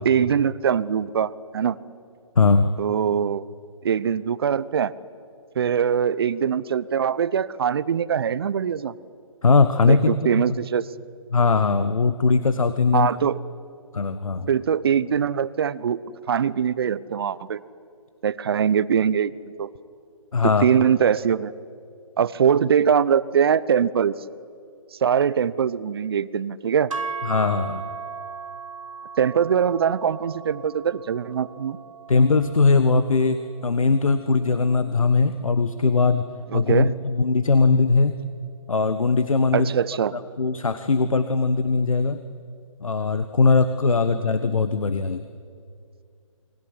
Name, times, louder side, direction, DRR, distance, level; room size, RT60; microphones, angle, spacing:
voice 1, 0.0-1.8 2.8-3.5 3.8-4.9 5.6-8.9 9.9-10.8 12.9-13.4 14.5-16.0 16.3-17.6 18.2-19.3 19.6-19.7 20.4-21.5 22.2-24.1 25.0-26.9 29.2-31.8 36.5-36.9 39.5-40.1, right 8 dB, 45° right, 18 dB, 0.9 m, -22 dB
voice 2, 2.3-2.7 9.4-10.4 11.3-13.1 13.9-14.5 20.3-20.6 27.2-27.8 32.1-36.2 36.5-38.2 38.7-39.7 40.1-42.2 42.8-45.2, left 4 dB, 75° left, 11 dB, 1.5 m, -20 dB
sound 1, 26.9-35.1, right 5 dB, 70° right, 1.0 m, -38 dB
29.0 x 20.5 x 9.9 m, 2.3 s
figure-of-eight pair, 150°, 17 cm